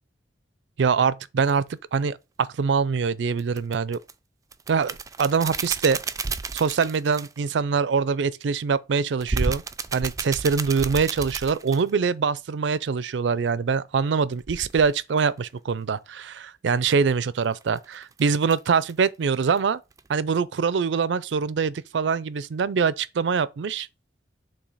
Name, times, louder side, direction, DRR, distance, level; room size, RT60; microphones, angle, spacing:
voice 1, 0.8-4.0 4.7-6.0 6.5-9.6 9.9-19.8 20.1-23.9, right 5 dB, 90° right, 0.4 m, -24 dB
sound 1, 1.5-1.6 3.4-4.1 4.5-7.5 9.2-11.9 14.4-15.0 17.4-19.1 19.5-19.6 19.9-20.1, right 4 dB, 20° right, 0.3 m, -31 dB
7.0 x 2.8 x 5.4 m
head